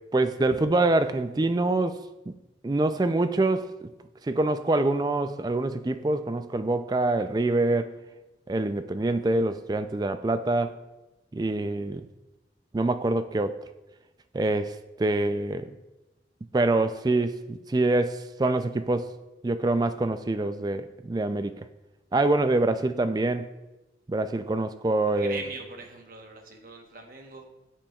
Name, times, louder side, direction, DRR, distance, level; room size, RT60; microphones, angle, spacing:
voice 1, 0.1-2.0 2.3-2.4 2.6-3.7 4.3-7.9 8.5-10.8 11.3-12.1 12.7-13.6 14.3-15.7 16.5-19.1 19.4-21.6 22.1-23.5 24.1-25.4, right 2 dB, 20° right, 10 dB, 0.3 m, -25 dB
voice 2, 25.1-27.4, right 3 dB, 50° right, 3 dB, 1.1 m, -41 dB
14.0 x 6.0 x 2.4 m, 1.0 s
head